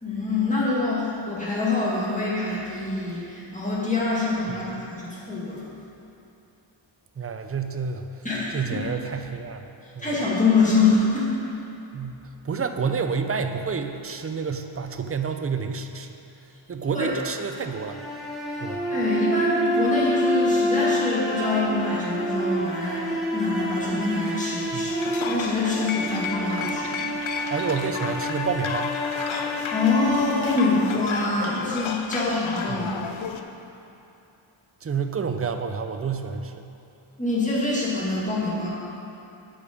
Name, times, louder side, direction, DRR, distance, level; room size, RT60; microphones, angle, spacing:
voice 1, 0.0-5.6 8.2-8.8 10.0-11.2 16.9-17.1 18.7-27.5 29.4-32.9 37.2-38.7, left 3 dB, 15° left, -7 dB, 1.9 m, -25 dB
voice 2, 4.5-4.8 7.2-8.3 8.5-9.7 10.0-10.2 11.9-16.2 16.7-18.0 18.6-18.8 24.7-25.0 27.5-29.0 32.7-33.0 34.8-36.7, right 5 dB, 30° right, 7 dB, 0.4 m, -29 dB
Spirit Cello, 17.7-31.8, equal, ahead, 1.1 m, -28 dB
sound 1, 24.9-33.4, left 6 dB, 70° left, 0.6 m, -33 dB
11.0 x 5.2 x 5.1 m, 2.8 s
wide cardioid pair, 150°, 49 cm